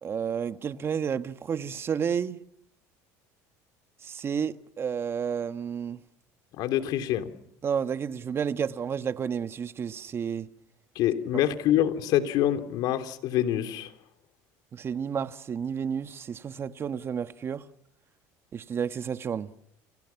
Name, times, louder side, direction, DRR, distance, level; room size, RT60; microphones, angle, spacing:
voice 1, 0.0-2.4 4.0-6.0 7.6-10.5 14.7-17.7 18.5-19.5, right 7 dB, 35° right, 1.4 m, -31 dB
voice 2, 6.6-7.3 10.9-13.9, left 12 dB, 65° left, 3.2 m, -26 dB
29.5 x 29.5 x 5.9 m
supercardioid pair, 115°, 7 cm